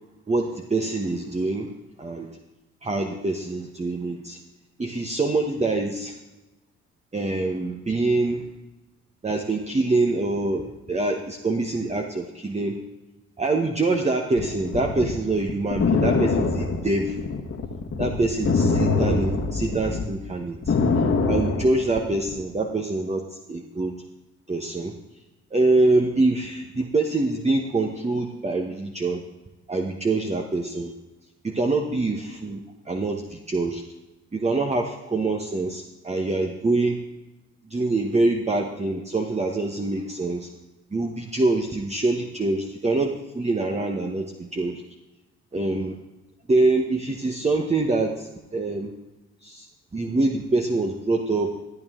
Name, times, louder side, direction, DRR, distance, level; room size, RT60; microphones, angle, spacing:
voice 1, 0.3-1.7 2.0-2.4 2.8-4.4 4.8-6.2 7.1-8.5 9.2-12.8 13.4-17.3 18.0-23.9 24.5-24.9 25.5-29.2 29.7-30.9 31.4-33.8 34.3-37.0 37.6-40.5 40.9-44.8 45.5-46.0 46.5-48.9 49.4-49.7 49.9-51.6, right 2 dB, 20° right, 3 dB, 1.1 m, -25 dB
sound 1, 14.3-20.0 20.4-22.3, left 4 dB, 45° left, 1.6 m, -24 dB
13.5 x 8.7 x 3.7 m, 1.0 s
supercardioid pair, 60°, 31 cm